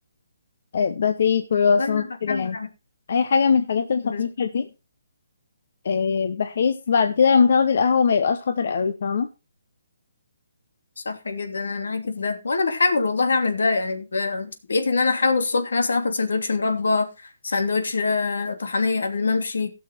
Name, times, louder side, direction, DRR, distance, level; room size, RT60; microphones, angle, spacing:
voice 1, 0.7-2.6 3.1-4.7 5.8-9.3, left 6 dB, 50° left, 8 dB, 0.9 m, -21 dB
voice 2, 1.8-2.7 4.0-4.2 11.0-19.7, left 4 dB, 80° left, 6 dB, 2.9 m, -24 dB
17.0 x 6.5 x 4.2 m, 0.27 s
hypercardioid pair, 170°, 0 cm